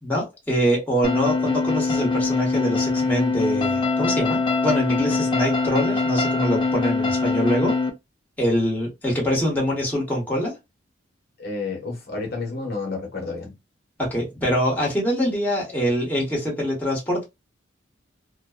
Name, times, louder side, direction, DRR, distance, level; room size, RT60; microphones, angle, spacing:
voice 1, 0.0-7.8 8.4-10.5 14.0-17.2, equal, 10° left, 1.1 m, -24 dB
sound 1, 1.0-7.9, left 4 dB, 25° left, 0.4 m, -23 dB
voice 2, 11.4-13.5, left 3 dB, 55° left, 0.9 m, -30 dB
2.5 x 2.1 x 2.3 m
head